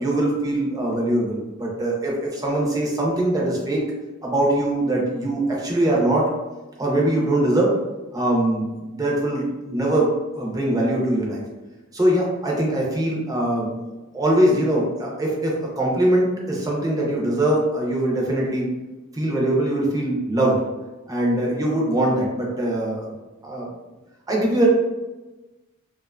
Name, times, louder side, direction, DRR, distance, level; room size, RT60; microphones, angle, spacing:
voice 1, 0.0-3.8 4.2-6.3 6.8-7.7 8.1-10.1 10.3-11.4 11.9-13.8 14.1-18.7 19.1-20.6 21.1-23.0 23.4-23.7 24.3-24.7, right 1 dB, 15° right, -3 dB, 0.5 m, -22 dB
2.5 x 2.2 x 2.4 m, 1.1 s
head